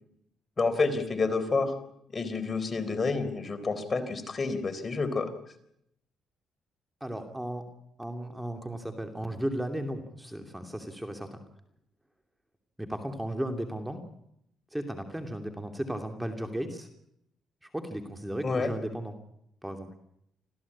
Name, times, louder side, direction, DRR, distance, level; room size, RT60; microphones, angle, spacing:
voice 1, 0.6-1.7 2.1-5.3 18.4-18.7, left 4 dB, 30° left, 8 dB, 4.0 m, -29 dB
voice 2, 7.0-7.6 8.0-11.4 12.8-14.0 14.7-16.9 17.6-19.2 19.6-19.9, right 1 dB, 5° right, 5 dB, 2.8 m, -35 dB
27.0 x 16.0 x 8.6 m, 0.76 s
cardioid pair, 90°, 0 cm